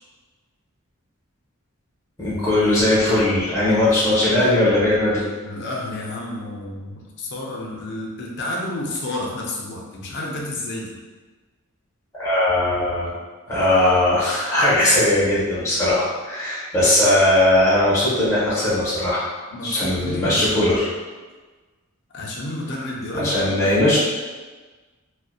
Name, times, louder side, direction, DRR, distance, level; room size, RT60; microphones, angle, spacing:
voice 1, 2.2-5.2 12.1-13.1 13.5-19.3 19.6-20.9 23.1-24.0, left 1 dB, 15° left, -9 dB, 0.7 m, -19 dB
voice 2, 5.4-11.0 19.5-20.7 22.1-23.9, left 1 dB, 50° left, -2 dB, 0.4 m, -30 dB
2.6 x 2.1 x 2.3 m, 1.3 s
head